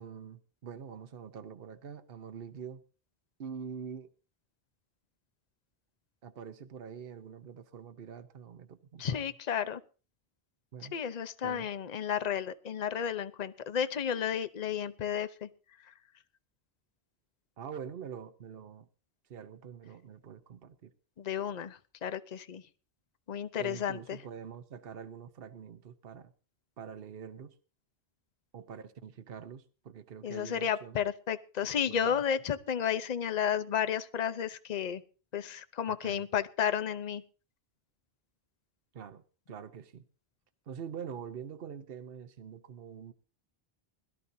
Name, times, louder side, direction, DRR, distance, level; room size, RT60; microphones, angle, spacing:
voice 1, 0.0-2.8 3.4-4.1 6.2-9.3 10.7-11.0 11.4-11.7 17.6-18.9 19.3-20.9 23.6-26.3 26.8-27.6 28.5-31.0 31.6-32.2 35.9-36.3 38.9-40.0 40.7-43.1, right 7 dB, 65° right, 1.1 m, -45 dB
voice 2, 9.0-9.8 10.9-15.5 21.2-22.6 23.3-24.2 30.2-35.0 35.3-37.2, left 8 dB, 45° left, 0.8 m, -32 dB
21.5 x 13.0 x 2.7 m
omnidirectional pair, 1.1 m